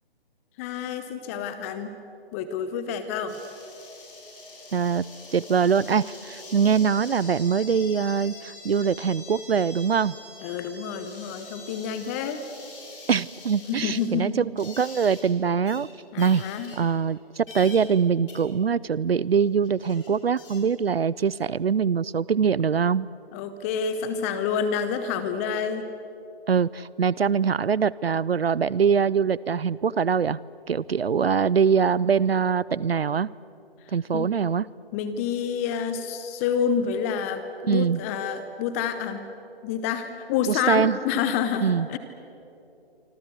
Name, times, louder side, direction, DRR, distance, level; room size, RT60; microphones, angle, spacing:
voice 1, 0.6-1.9 2.3-3.4 10.4-12.4 13.7-14.5 16.1-16.8 23.3-25.9 34.1-34.3 34.9-39.2 39.6-42.0, left 7 dB, 15° left, 11 dB, 0.8 m, -28 dB
sound 1, 3.3-15.3 15.6-15.8 16.2-17.1 17.5-17.9 18.3-18.4 19.3-19.4 19.6-20.6, left 3 dB, 60° left, 7.6 m, -44 dB
voice 2, 4.7-5.1 5.3-10.1 13.1-15.9 16.2-16.4 16.7-23.1 26.5-30.4 30.7-33.3 33.9-34.7 37.6-38.0 40.5-41.0 41.6-41.9, right 6 dB, 75° right, 22 dB, 0.6 m, -23 dB
27.0 x 25.5 x 8.2 m, 2.9 s
figure-of-eight pair, 140°, 31 cm